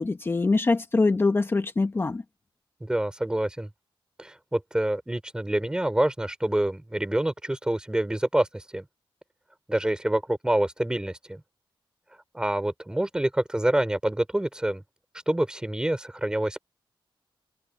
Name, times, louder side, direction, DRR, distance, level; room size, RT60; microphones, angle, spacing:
voice 1, 0.0-2.2, left 3 dB, 25° left, 1.0 m, -23 dB
voice 2, 2.8-3.7 4.2-8.8 9.7-11.4 12.3-14.8 15.3-16.6, right 1 dB, 10° right, 2.8 m, -27 dB
wide cardioid pair, 160°, 9 cm